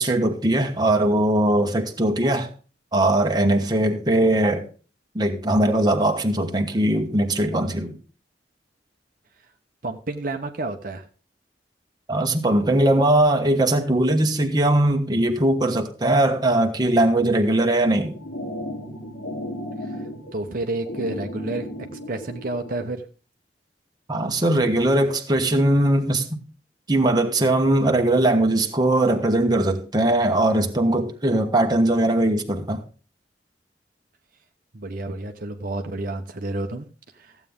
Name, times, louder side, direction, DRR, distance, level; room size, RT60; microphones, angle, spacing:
voice 1, 0.0-2.5 2.9-4.6 5.1-8.0 12.1-18.2 24.1-26.4 26.9-32.8, right 1 dB, 25° right, 1.2 m, -20 dB
voice 2, 9.8-11.1 19.8-20.1 20.3-23.0 34.7-36.9 37.1-37.3, right 2 dB, 50° right, 0.9 m, -30 dB
sound 1, 17.8-22.8, left 1 dB, 85° left, 2.6 m, -35 dB
14.5 x 8.3 x 3.6 m
head